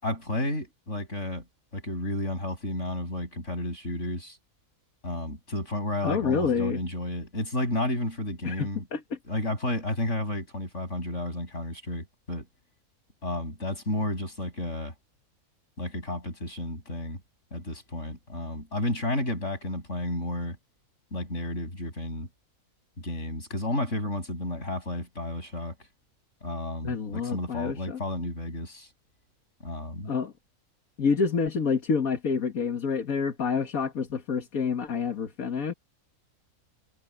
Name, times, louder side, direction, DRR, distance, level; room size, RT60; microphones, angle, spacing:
voice 1, 0.0-1.4 1.7-4.4 5.0-8.8 9.3-12.5 13.2-14.9 15.8-17.2 17.5-20.6 21.1-22.3 23.0-25.8 26.4-28.9 29.6-30.1, left 1 dB, 55° left, 8.3 m, -32 dB
voice 2, 6.0-6.8 8.4-9.2 26.8-28.0 30.1-30.3 31.0-35.7, left 5 dB, 75° left, 2.2 m, -28 dB
omnidirectional pair, 1.5 m